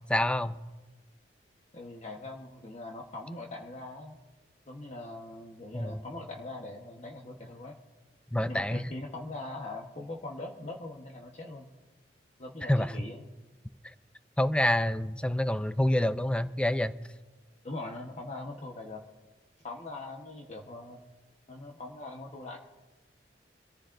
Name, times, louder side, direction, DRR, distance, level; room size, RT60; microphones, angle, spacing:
voice 1, 0.1-0.5 5.7-6.0 8.3-8.8 12.6-12.9 14.4-16.9, left 1 dB, 5° left, 12 dB, 0.5 m, -27 dB
voice 2, 1.7-4.2 4.7-7.8 8.5-11.7 12.4-13.3 17.6-19.0 19.6-21.0 21.5-22.6, left 2 dB, 40° left, 0 dB, 1.1 m, -41 dB
25.5 x 14.5 x 2.6 m, 1.2 s
head